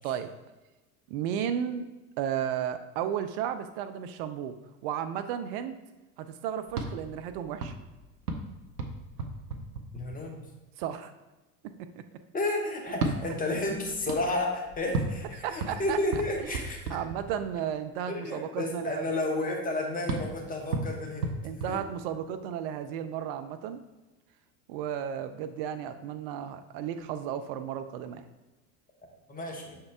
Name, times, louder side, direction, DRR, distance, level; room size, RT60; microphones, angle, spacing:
voice 1, 1.1-1.9 2.2-4.6 4.8-5.8 6.2-7.7 10.8-11.1 15.3-16.6 16.9-19.2 19.5-19.6 21.4-23.8 24.7-28.2, right 9 dB, 40° right, 9 dB, 0.4 m, -34 dB
sound 1, 6.7-10.5 12.9-17.7 20.1-22.5, right 3 dB, 80° right, 0.8 m, -36 dB
voice 2, 9.9-10.4 12.3-16.9 18.1-21.4 21.7-21.8 29.3-29.8, left 2 dB, 20° left, 1 dB, 1.2 m, -32 dB
6.5 x 4.3 x 3.4 m, 1.1 s
figure-of-eight pair, 75°, 47 cm